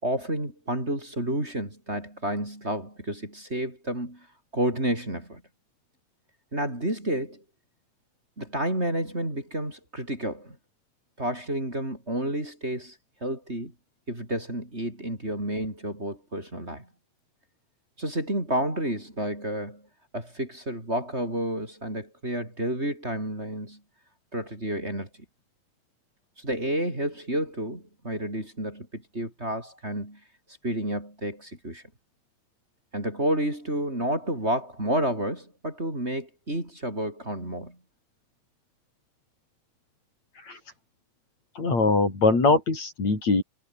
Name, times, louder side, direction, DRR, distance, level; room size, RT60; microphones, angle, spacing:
voice 1, 0.0-4.3 4.5-5.4 6.5-7.4 8.4-10.6 11.2-13.0 13.2-13.7 14.1-16.9 18.0-19.8 20.1-23.8 24.3-25.1 26.4-30.2 30.6-31.8 32.9-37.8, right 1 dB, 20° right, 6.6 m, -30 dB
voice 2, 41.6-43.4, left 3 dB, 60° left, 8.0 m, -22 dB
omnidirectional pair, 3.5 m